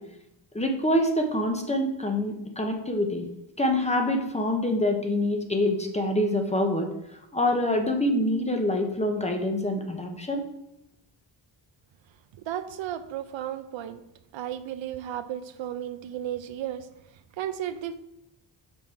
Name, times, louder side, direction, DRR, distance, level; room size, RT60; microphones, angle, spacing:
voice 1, 0.5-3.3 3.6-6.9 7.3-10.4, left 1 dB, 15° left, 3 dB, 0.7 m, -25 dB
voice 2, 12.5-14.0 14.3-16.9 17.4-18.0, right 11 dB, 80° right, 11 dB, 0.6 m, -34 dB
5.8 x 5.4 x 4.5 m, 0.84 s
wide cardioid pair, 165°, 45 cm